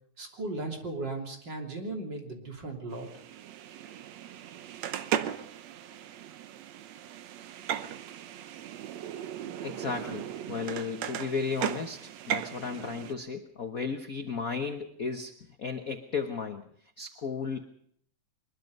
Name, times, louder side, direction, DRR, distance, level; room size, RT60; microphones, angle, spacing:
voice 1, 0.2-3.1, right 2 dB, 35° right, 2 dB, 3.6 m, -36 dB
sound 1, 2.9-13.1, right 10 dB, 70° right, 2.1 m, -37 dB
voice 2, 9.6-15.3 15.6-16.7 17.0-17.6, left 5 dB, 65° left, 6 dB, 0.8 m, -34 dB
23.0 x 21.5 x 5.4 m, 0.65 s
omnidirectional pair, 3.5 m